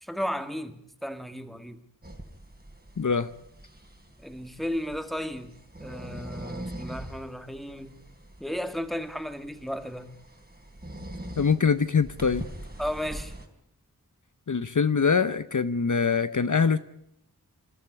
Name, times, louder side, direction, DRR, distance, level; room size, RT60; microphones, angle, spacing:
voice 1, 0.0-1.8 4.2-5.5 5.8-7.9 8.4-10.1 12.8-13.3, equal, ahead, 1.9 m, -34 dB
sound 1, 2.0-13.5, right 1 dB, 25° right, 3.3 m, -43 dB
voice 2, 3.0-3.3 11.4-12.4 14.5-16.8, left 5 dB, 55° left, 0.8 m, -23 dB
26.5 x 13.0 x 9.9 m
wide cardioid pair, 50°, 37 cm